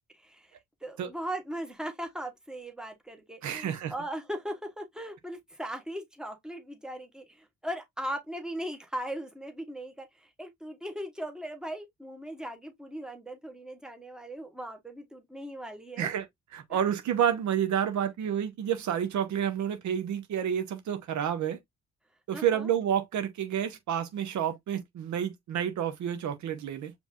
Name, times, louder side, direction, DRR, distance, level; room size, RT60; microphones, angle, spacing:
voice 1, 0.1-0.5 0.8-16.2 22.3-22.7, right 1 dB, ahead, 1.3 m, -38 dB
voice 2, 3.4-3.9 16.0-16.3 16.5-21.6 22.3-26.9, right 9 dB, 70° right, 0.9 m, -29 dB
5.2 x 3.3 x 2.4 m
cardioid pair, 90°, 30 cm